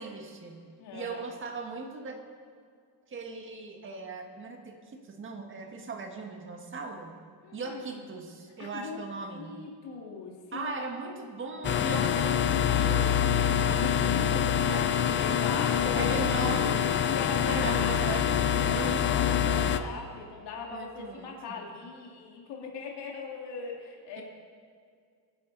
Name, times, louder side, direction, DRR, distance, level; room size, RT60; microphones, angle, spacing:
voice 1, 0.0-0.6 0.9-2.2 3.1-7.1 7.5-9.5 10.5-13.2 13.7-14.9 15.3-15.4 15.9-17.1 17.4-18.3 18.6-19.4 20.7-21.7 24.2-24.3, right 3 dB, 30° right, 3 dB, 1.6 m, -38 dB
voice 2, 0.8-1.3 7.4-8.0 8.6-9.1 9.3-10.8 13.6-14.1 15.1-16.3 16.6-16.7 17.1-17.9 18.3-24.2, left 5 dB, 85° left, 0 dB, 2.3 m, -39 dB
sound 1, 11.6-19.8, left 9 dB, 30° left, 0.5 m, -25 dB
24.0 x 11.0 x 4.1 m, 2.2 s
cardioid pair, 165°, 40 cm